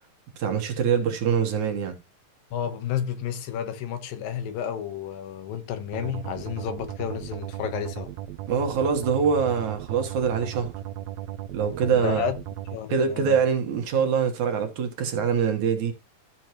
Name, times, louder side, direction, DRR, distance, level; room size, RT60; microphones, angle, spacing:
voice 1, 0.4-1.9 8.5-10.7 11.5-12.3 12.9-15.9, right 6 dB, 65° right, 2.6 m, -24 dB
voice 2, 2.5-8.1 11.9-12.4 12.7-13.4, left 9 dB, 85° left, 2.9 m, -31 dB
sound 1, 5.9-12.8, right 13 dB, 80° right, 1.5 m, -36 dB
14.0 x 6.3 x 3.0 m
omnidirectional pair, 4.0 m